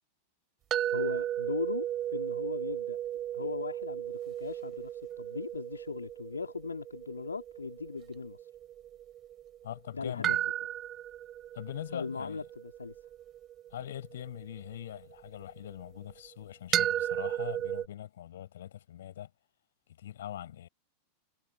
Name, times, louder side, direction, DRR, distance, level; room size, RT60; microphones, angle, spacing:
sound 1, 0.7-9.6 10.2-15.4 16.7-17.9, right 11 dB, 30° right, 5.1 m, -35 dB
voice 1, 0.9-3.0 3.3-8.4 9.9-10.4 11.9-13.0, left 4 dB, 75° left, 3.5 m, -38 dB
voice 2, 9.6-10.4 11.5-12.4 13.7-19.3 20.0-20.7, left 11 dB, 60° left, 7.6 m, -42 dB
figure-of-eight pair, 90°, 0 cm